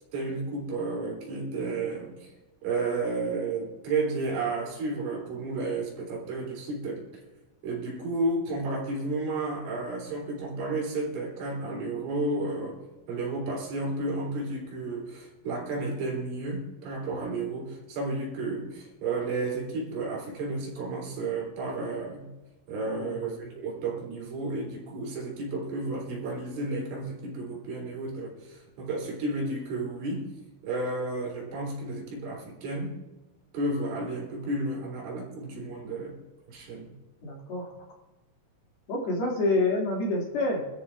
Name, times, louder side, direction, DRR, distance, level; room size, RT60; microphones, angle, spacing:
voice 1, 0.1-2.3 2.6-7.0 7.6-12.8 13.1-22.3 22.7-30.3 30.6-33.0 33.5-36.2 36.5-36.9, right 2 dB, 80° right, -2 dB, 6.1 m, -32 dB
voice 2, 37.2-37.7 38.9-40.6, left 2 dB, 60° left, -3 dB, 4.1 m, -27 dB
25.5 x 13.5 x 2.5 m, 1.1 s
omnidirectional pair, 5.5 m